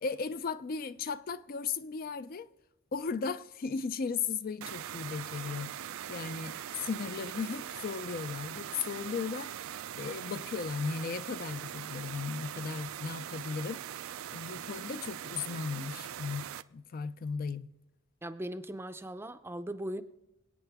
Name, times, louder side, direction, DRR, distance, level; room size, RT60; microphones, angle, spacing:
voice 1, 0.0-2.5 2.9-9.5 9.9-13.8 14.3-17.7, left 5 dB, 45° left, 0.4 m, -36 dB
sound 1, 4.6-16.6, right 10 dB, 80° right, 0.4 m, -41 dB
voice 2, 18.2-20.0, right 1 dB, 10° right, 0.5 m, -39 dB
25.5 x 8.7 x 3.5 m
head